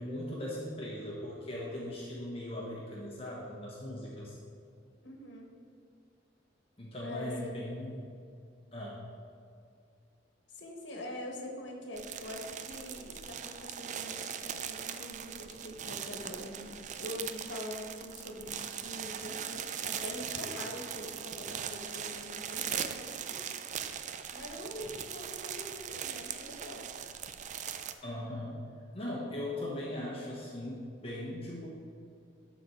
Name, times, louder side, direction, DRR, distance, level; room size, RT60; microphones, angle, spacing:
voice 1, 0.0-4.4 6.8-8.0 8.7-9.0 28.0-28.6 28.9-31.7, left 1 dB, 35° left, -4 dB, 1.2 m, -39 dB
voice 2, 5.0-5.5 7.0-7.5 10.5-23.7 24.3-26.9, left 1 dB, 75° left, 1 dB, 1.4 m, -44 dB
sound 1, 12.0-27.9, right 8 dB, 40° right, 0.4 m, -40 dB
12.0 x 4.2 x 4.6 m, 2.4 s
head